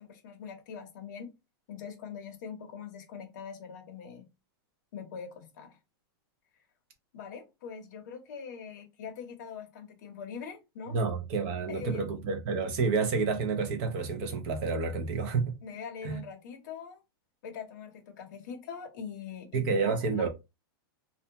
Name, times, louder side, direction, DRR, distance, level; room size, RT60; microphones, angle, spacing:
voice 1, 0.0-1.3 1.7-4.3 4.9-5.8 7.1-11.0 11.7-12.1 15.6-17.0 17.4-20.3, left 6 dB, 45° left, 0.7 m, -43 dB
voice 2, 10.9-15.6 16.0-16.2 19.5-20.3, right 4 dB, 25° right, 0.5 m, -29 dB
2.5 x 2.1 x 2.8 m
supercardioid pair, 175°, 13 cm